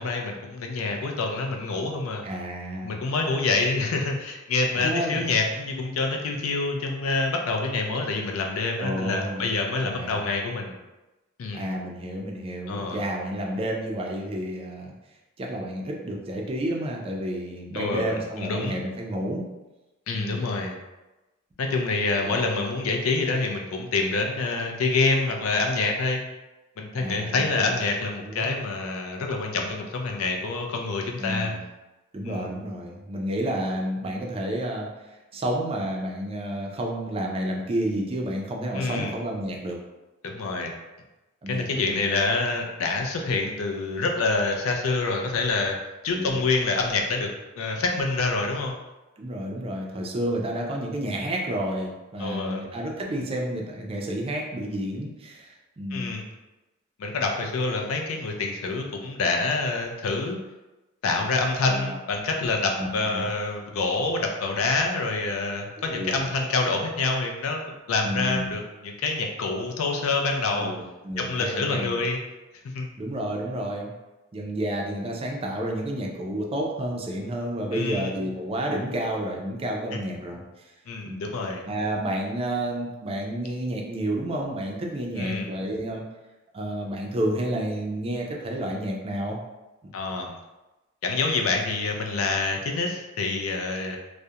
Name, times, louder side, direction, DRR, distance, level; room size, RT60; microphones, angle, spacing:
voice 1, 0.0-2.2 2.8-10.8 11.4-11.7 12.7-13.0 17.7-18.8 20.1-20.7 21.6-26.2 26.8-31.5 32.2-32.4 38.7-39.1 40.2-40.7 41.5-45.8 46.0-47.3 47.6-48.8 52.2-52.6 55.9-56.2 57.0-60.4 61.0-67.6 67.9-70.7 71.2-72.2 72.6-72.9 77.7-78.1 80.9-81.6 85.2-85.5 89.9-90.4 91.0-94.0, left 3 dB, 80° left, 2 dB, 0.4 m, -26 dB
voice 2, 2.2-3.0 4.7-5.2 8.8-9.5 9.8-10.3 11.5-14.9 15.4-19.5 20.1-20.4 22.2-22.4 26.9-27.7 28.2-28.5 31.2-31.6 32.1-34.9 35.3-39.8 41.4-42.0 46.1-46.3 49.2-56.2 61.7-62.0 62.8-63.3 65.8-66.2 68.0-68.5 70.6-72.0 73.0-73.9 74.3-80.4 81.0-81.3 81.7-86.0 86.5-89.4 89.8-89.9, right 1 dB, 30° right, 0 dB, 0.4 m, -30 dB
2.4 x 2.1 x 2.7 m, 1.1 s
head